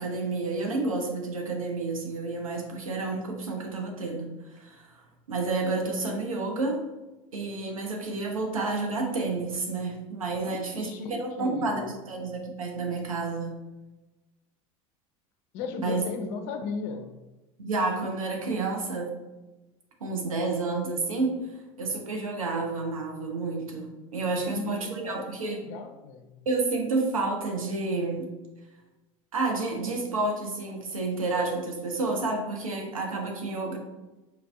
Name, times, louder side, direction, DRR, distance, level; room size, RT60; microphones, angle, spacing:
voice 1, 0.0-5.0 5.3-6.8 7.3-13.6 15.8-16.0 17.6-19.1 20.0-21.4 21.8-25.6 26.5-28.3 29.3-33.8, right 3 dB, 90° right, 1 dB, 0.6 m, -30 dB
voice 2, 10.4-12.0 15.5-17.2 24.3-26.4, left 5 dB, 60° left, 6 dB, 0.5 m, -37 dB
4.5 x 2.5 x 2.3 m, 1.1 s
hypercardioid pair, 75°, 17 cm